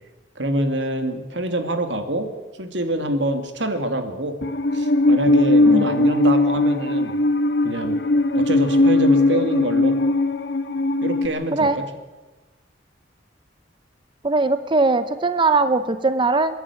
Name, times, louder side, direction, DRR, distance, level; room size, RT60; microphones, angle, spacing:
voice 1, 0.4-2.3 2.6-4.4 4.7-7.2 7.6-8.0 8.3-10.0 11.0-11.8, right 1 dB, 80° right, 7 dB, 2.6 m, -25 dB
Musical instrument, 4.4-11.3, left 2 dB, 65° left, 1.7 m, -19 dB
voice 2, 14.2-16.5, right 3 dB, 25° right, 11 dB, 0.7 m, -20 dB
28.5 x 11.0 x 9.9 m, 1.2 s
head